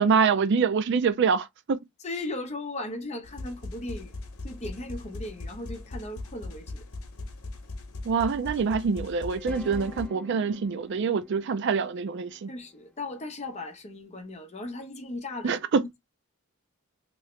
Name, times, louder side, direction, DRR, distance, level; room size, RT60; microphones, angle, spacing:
voice 1, 0.0-1.8 8.0-12.5 15.4-15.8, right 5 dB, 55° right, 0.4 m, -25 dB
voice 2, 2.0-4.2 4.4-6.8 8.6-8.8 12.5-16.0, left 2 dB, 30° left, 0.8 m, -37 dB
sound 1, 3.2-10.1, left 2 dB, 75° left, 0.8 m, -39 dB
sound 2, 9.3-13.5, left 1 dB, 5° left, 0.5 m, -47 dB
3.0 x 2.8 x 3.1 m
head